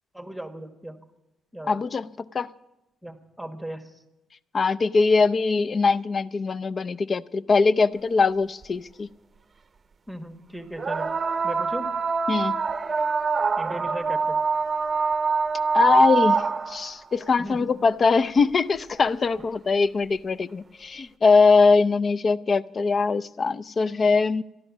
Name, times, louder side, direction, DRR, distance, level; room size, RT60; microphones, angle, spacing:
voice 1, 0.1-1.0 1.5-1.8 3.0-4.0 10.1-11.1 11.4-11.9 13.6-14.4 17.4-17.7, right 1 dB, ahead, 1.4 m, -37 dB
voice 2, 1.7-2.1 2.3-2.5 4.5-9.1 12.3-12.5 15.7-16.4 16.7-24.4, left 4 dB, 40° left, 0.5 m, -21 dB
sound 1, 8.6-8.7 10.8-16.9 18.4-18.5 19.3-19.4, right 5 dB, 35° right, 0.7 m, -24 dB
13.0 x 11.5 x 7.1 m
cardioid pair, 90°, 0 cm